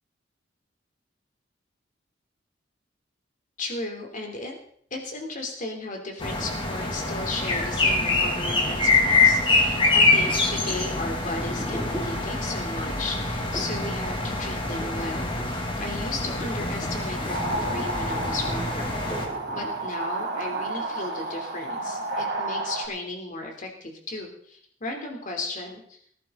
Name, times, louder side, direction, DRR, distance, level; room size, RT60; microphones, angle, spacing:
voice 1, 3.6-4.6 4.9-26.0, left 2 dB, 45° left, 2 dB, 3.1 m, -35 dB
sound 1, 6.2-19.3, left 3 dB, 30° left, 2.3 m, -25 dB
sound 2, 6.4-12.7 13.5-13.9 14.2-19.9, equal, 10° left, 2.5 m, -42 dB
sound 3, 16.9-22.9, right 2 dB, 60° right, 2.6 m, -31 dB
19.0 x 11.5 x 3.8 m, 0.64 s
head